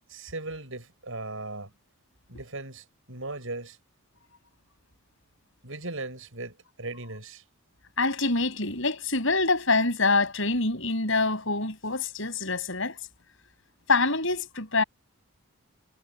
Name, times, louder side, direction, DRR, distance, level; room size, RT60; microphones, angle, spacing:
voice 1, 0.1-1.7 2.3-3.8 5.6-7.4, right 2 dB, 65° right, 6.6 m, -38 dB
voice 2, 8.0-13.0 13.9-14.8, left 3 dB, 60° left, 6.1 m, -25 dB
head